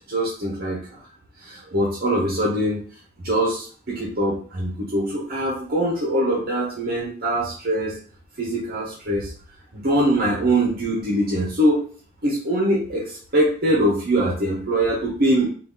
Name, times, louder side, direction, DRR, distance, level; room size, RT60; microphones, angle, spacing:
voice 1, 0.1-1.0 1.4-2.8 3.2-8.0 8.4-9.3 9.7-11.8 12.2-15.5, right 1 dB, 45° right, -3 dB, 0.8 m, -23 dB
3.0 x 2.4 x 3.5 m, 0.43 s
head